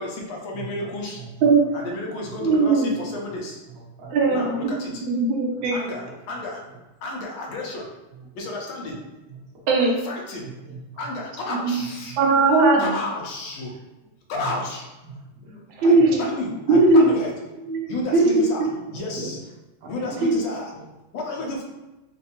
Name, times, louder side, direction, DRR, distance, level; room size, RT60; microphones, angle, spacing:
voice 1, 0.0-1.2 1.7-3.6 4.3-5.0 5.7-6.6 7.0-7.9 8.3-9.0 10.0-10.5 11.0-12.2 12.8-13.8 14.3-14.9 15.8-17.3 17.9-19.4 19.9-20.7 21.1-21.6, left 2 dB, 80° left, -1 dB, 1.5 m, -32 dB
voice 2, 0.5-1.5 2.3-2.4 3.0-3.1 3.7-4.5 5.6-5.7 6.0-6.1 7.3-7.5 9.3-9.4 9.8-10.0 10.4-10.8 12.1-12.2 14.3-14.5 15.0-15.8 16.7-17.1 18.8-19.3 19.8-20.2 20.7-20.8, right 4 dB, 60° right, -5 dB, 1.6 m, -40 dB
voice 3, 2.4-2.9 4.1-4.6 5.0-5.8 9.7-9.9 11.5-11.8 12.2-12.9 15.8-16.2 16.7-17.1 17.6-18.3 20.2-20.4, right 3 dB, 80° right, -1 dB, 1.4 m, -18 dB
4.4 x 2.5 x 2.8 m, 1.0 s
omnidirectional pair, 2.2 m